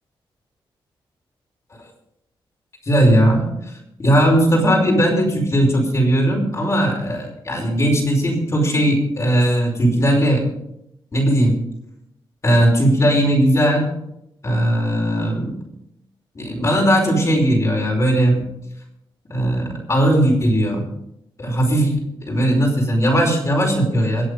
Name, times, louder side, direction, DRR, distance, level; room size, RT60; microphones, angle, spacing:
voice 1, 2.8-3.5 4.0-10.5 11.1-11.6 12.4-13.9 14.4-15.5 16.3-18.4 19.3-20.8 21.4-21.9 22.2-24.3, right 1 dB, 35° left, -1 dB, 4.9 m, -18 dB
24.0 x 8.0 x 5.2 m, 0.82 s
wide cardioid pair, 115°, 9 cm